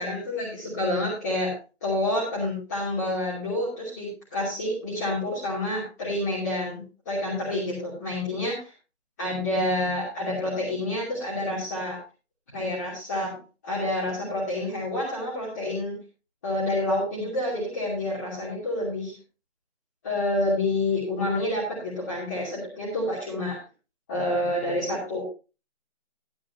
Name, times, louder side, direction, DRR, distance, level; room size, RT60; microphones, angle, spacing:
voice 1, 0.0-1.5 1.8-8.7 9.2-12.0 12.5-13.4 13.6-15.9 16.4-19.1 20.0-23.6 24.1-25.2, left 1 dB, 15° left, -8 dB, 2.8 m, -28 dB
14.0 x 11.5 x 2.7 m, 0.32 s
figure-of-eight pair, 175°, 37 cm